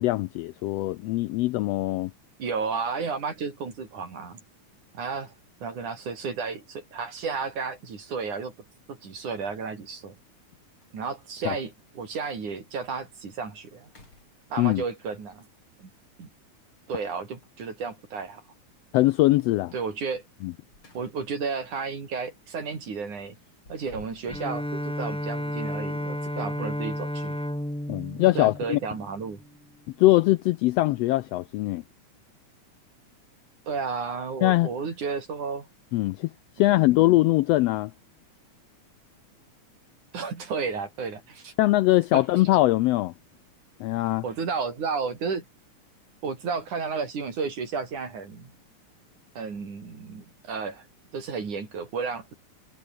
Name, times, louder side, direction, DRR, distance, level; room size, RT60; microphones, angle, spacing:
voice 1, 0.0-2.1 11.4-11.5 14.6-14.8 18.9-19.7 20.4-20.5 27.9-28.8 30.0-31.8 34.4-34.7 35.9-36.3 36.6-37.9 41.6-43.1 43.8-44.2, left 17 dB, 90° left, 1.4 m, -22 dB
voice 2, 2.4-4.4 4.9-5.3 5.6-8.5 8.9-10.2 10.9-13.9 14.5-15.5 15.8-15.9 16.2-16.3 16.9-18.4 19.7-20.3 20.9-23.4 23.7-27.4 28.4-29.4 33.7-35.7 36.6-36.7 40.1-41.5 42.1-42.2 44.2-45.4 46.2-48.5 49.4-50.9 51.1-52.3, right 5 dB, 80° right, 6.0 m, -32 dB
sound 1, 8.1-8.2 9.9-10.0 10.4-10.5 10.7-11.3 11.9-12.0 12.5-12.6 13.0-13.4 13.8-14.9 17.0-17.6 20.4-21.4 21.8-22.0 23.3-24.7, left 3 dB, 40° left, 7.6 m, -53 dB
Bowed string instrument, 24.3-29.5, equal, 5° left, 0.7 m, -32 dB
omnidirectional pair, 3.5 m